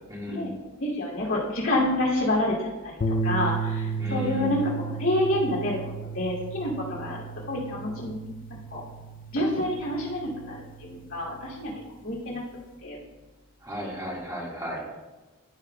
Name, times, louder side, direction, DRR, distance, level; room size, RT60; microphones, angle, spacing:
voice 1, 0.1-0.6 4.0-4.6 13.6-14.8, left 1 dB, 15° right, -4 dB, 1.8 m, -34 dB
voice 2, 0.8-5.8 6.1-7.2 7.5-8.2 8.7-8.8 9.3-11.7 12.0-12.4 12.8-13.0, left 1 dB, 65° left, -4 dB, 2.7 m, -28 dB
sound 1, 3.0-11.4, right 4 dB, 40° left, 0.5 m, -34 dB
15.0 x 6.1 x 2.3 m, 1.2 s
head